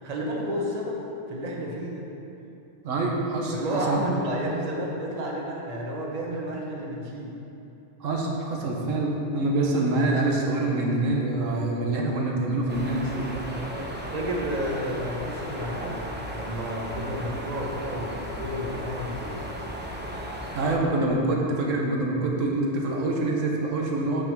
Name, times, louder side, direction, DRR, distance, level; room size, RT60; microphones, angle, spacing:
voice 1, 0.0-2.1 3.5-7.4 13.5-16.1 16.3-19.4 19.8-20.4, equal, 35° right, -2 dB, 1.0 m, -31 dB
voice 2, 2.8-4.0 8.0-13.4 20.5-24.2, right 2 dB, 85° right, -1 dB, 1.4 m, -26 dB
sound 1, 12.7-20.8, equal, 10° right, 0.5 m, -36 dB
6.1 x 5.4 x 6.5 m, 2.9 s
omnidirectional pair, 1.3 m